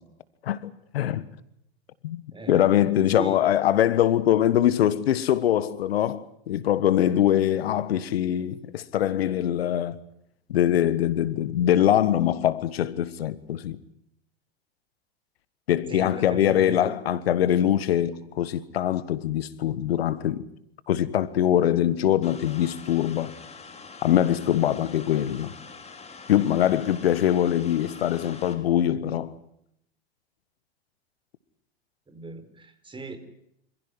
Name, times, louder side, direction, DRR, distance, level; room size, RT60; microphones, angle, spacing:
voice 1, 0.4-1.3 2.0-10.0 10.5-13.8 15.7-20.5 20.9-23.4 24.0-25.5 26.3-29.4, left 11 dB, 75° left, 1.4 m, -23 dB
voice 2, 2.3-2.8 3.1-3.4 15.9-17.0 32.1-33.2, right 3 dB, 15° right, 4.1 m, -38 dB
sound 1, 22.2-28.5, left 4 dB, 20° left, 4.4 m, -45 dB
27.0 x 16.0 x 9.7 m
hypercardioid pair, 95°, 30 cm